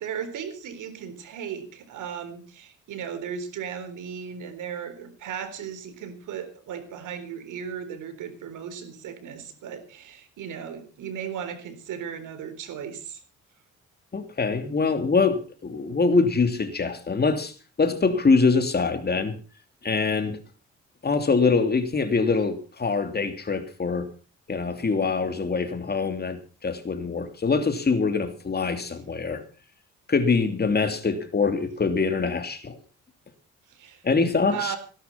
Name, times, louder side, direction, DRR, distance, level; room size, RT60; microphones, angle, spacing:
voice 1, 0.0-13.2 33.7-34.0 34.5-34.8, right 8 dB, 80° right, 3.9 m, -36 dB
voice 2, 14.1-19.4 19.8-20.4 21.0-24.1 24.5-29.4 30.1-32.8 34.0-34.7, left 4 dB, 35° left, 2.9 m, -24 dB
17.5 x 11.0 x 5.8 m
cardioid pair, 90°, 30 cm